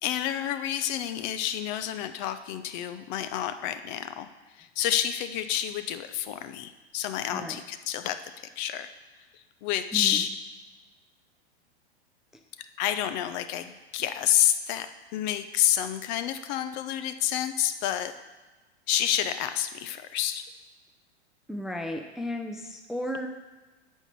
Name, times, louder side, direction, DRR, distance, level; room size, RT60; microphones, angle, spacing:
voice 1, 0.0-4.3 4.6-8.9 9.3-10.3 12.6-18.1 18.9-20.5, left 11 dB, 45° left, 10 dB, 0.7 m, -29 dB
voice 2, 9.9-10.3 21.5-23.3, left 1 dB, ahead, 4 dB, 0.4 m, -34 dB
8.9 x 4.6 x 7.1 m, 1.2 s
hypercardioid pair, 110°, 33 cm